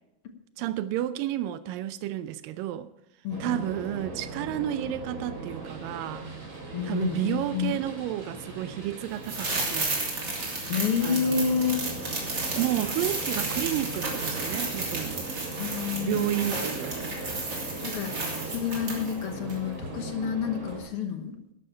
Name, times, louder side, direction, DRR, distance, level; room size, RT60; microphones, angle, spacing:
voice 1, 0.6-2.9 3.4-6.3 6.8-10.1 11.0-11.5 12.6-15.3 16.0-17.1, right 13 dB, 85° right, 2.3 m, -31 dB
voice 2, 3.2-3.6 6.7-7.8 10.7-11.8 15.6-16.3 17.8-18.1 18.4-21.5, left 7 dB, 60° left, 1.6 m, -29 dB
sound 1, 3.3-20.8, right 2 dB, 50° right, 4.5 m, -39 dB
sound 2, 9.2-19.2 19.5-19.6, right 3 dB, 30° right, 3.3 m, -32 dB
12.5 x 12.0 x 4.5 m
omnidirectional pair, 3.9 m